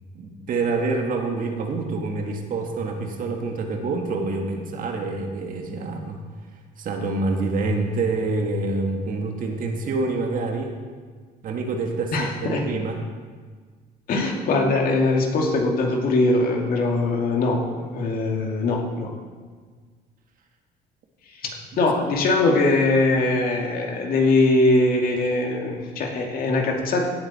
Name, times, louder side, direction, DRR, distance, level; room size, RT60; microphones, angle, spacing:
voice 1, 0.1-6.2 6.8-10.7 11.4-13.0 21.7-21.9, right 3 dB, 55° right, 3 dB, 1.8 m, -27 dB
voice 2, 12.1-12.7 14.1-19.1 21.8-27.1, left 2 dB, 60° left, 1 dB, 2.3 m, -21 dB
17.0 x 8.2 x 4.3 m, 1.5 s
cardioid pair, 110°, 17 cm